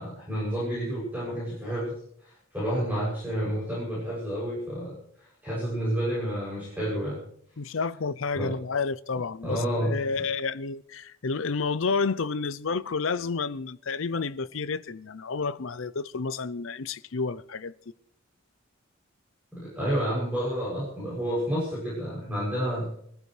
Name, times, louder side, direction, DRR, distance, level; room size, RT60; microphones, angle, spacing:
voice 1, 0.0-1.9 2.2-7.2 8.3-8.5 9.4-9.9 19.5-22.9, equal, 10° right, 7.4 m, -30 dB
voice 2, 7.6-17.8, left 4 dB, 65° left, 0.6 m, -30 dB
23.5 x 15.0 x 3.3 m
head